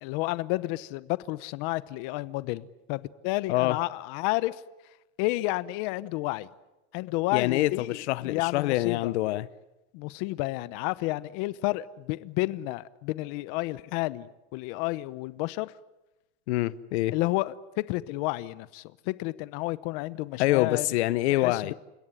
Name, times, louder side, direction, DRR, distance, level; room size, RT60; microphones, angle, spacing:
voice 1, 0.0-4.6 5.2-6.5 6.9-9.1 9.9-15.7 17.1-20.9 21.3-21.7, left 19 dB, 55° left, 1.0 m, -31 dB
voice 2, 7.3-9.5 16.5-17.1 20.4-21.7, left 17 dB, 90° left, 0.9 m, -26 dB
29.5 x 17.0 x 9.9 m
supercardioid pair, 155°, 33 cm